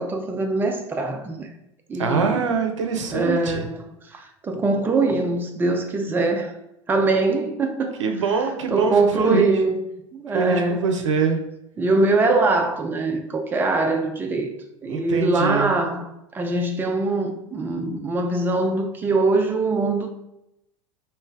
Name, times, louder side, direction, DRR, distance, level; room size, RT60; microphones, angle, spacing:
voice 1, 0.0-1.5 1.9-2.4 3.1-6.5 6.9-8.0 8.4-9.8 10.1-10.9 11.8-14.5 14.8-20.1, right 3 dB, 10° right, 0.4 m, -23 dB
voice 2, 2.0-3.6 8.0-9.5 10.3-11.4 14.9-15.7, right 5 dB, 65° right, 0.6 m, -23 dB
3.2 x 3.1 x 3.4 m
figure-of-eight pair, 80°, 16 cm